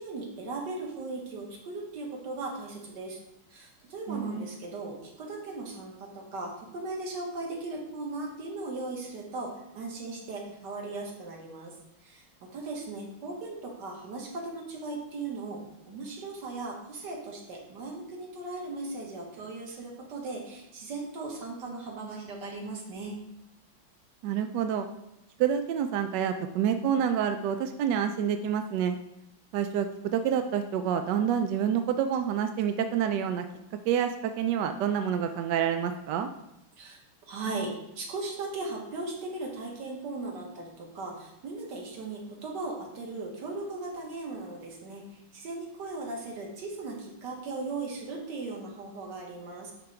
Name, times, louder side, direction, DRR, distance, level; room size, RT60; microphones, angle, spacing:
voice 1, 0.0-3.2 3.5-11.7 12.0-15.6 15.9-23.2 36.8-37.0 37.3-49.7, right 3 dB, 60° right, 0 dB, 1.9 m, -38 dB
voice 2, 4.1-4.5 24.2-24.9 25.4-29.0 29.5-33.5 33.9-36.3, right 8 dB, 75° right, 7 dB, 1.0 m, -28 dB
10.5 x 3.7 x 4.4 m, 0.87 s
omnidirectional pair, 2.3 m